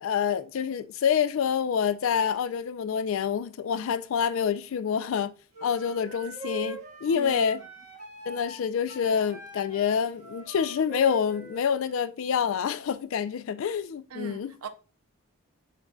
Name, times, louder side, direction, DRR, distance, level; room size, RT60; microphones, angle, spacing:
voice 1, 0.0-5.3 5.6-7.6 8.3-14.6, left 7 dB, 65° left, 0.3 m, -27 dB
sound 1, 5.5-12.0, right 1 dB, 35° right, 1.5 m, -42 dB
voice 2, 7.1-7.4 14.1-14.7, right 6 dB, 90° right, 0.5 m, -40 dB
7.1 x 2.6 x 2.2 m
head